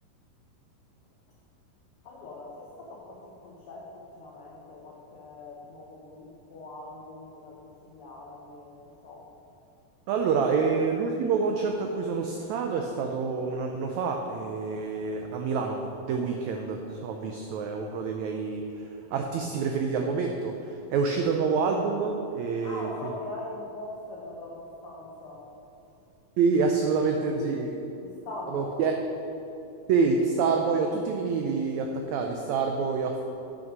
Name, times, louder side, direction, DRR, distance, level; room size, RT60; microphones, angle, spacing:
voice 1, 2.0-9.3 22.6-25.5 25.9-26.0 26.8-27.7 28.0-28.9, left 2 dB, 90° left, -3 dB, 1.2 m, -42 dB
voice 2, 10.1-22.9 26.4-27.7 28.5-28.9 29.9-33.2, right 5 dB, 90° right, 3 dB, 1.6 m, -27 dB
9.0 x 6.3 x 6.0 m, 2.8 s
omnidirectional pair, 3.9 m